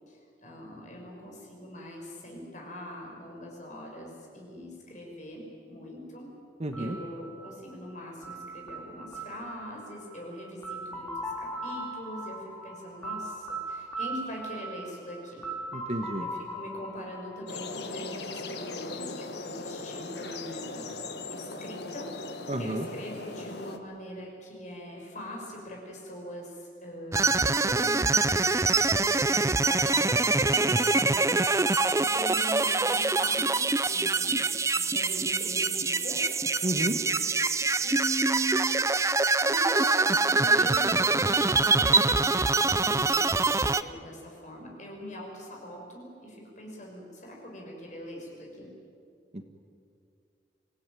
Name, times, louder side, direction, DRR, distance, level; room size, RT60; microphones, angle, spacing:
voice 1, 0.1-6.3 6.8-15.4 16.2-22.1 22.6-36.2 37.8-38.7 39.4-48.7, equal, 45° left, 0 dB, 6.2 m, -41 dB
voice 2, 6.6-7.0 15.7-16.3 22.5-22.9 36.6-37.0 49.3-49.4, right 1 dB, 35° right, 6 dB, 1.4 m, -31 dB
sound 1, 6.7-18.5, right 2 dB, 5° left, 3.7 m, -39 dB
sound 2, 17.5-23.8, left 3 dB, 65° left, 1.5 m, -39 dB
sound 3, 27.1-43.8, right 3 dB, 15° right, 0.5 m, -25 dB
26.0 x 17.0 x 9.2 m, 2.4 s
head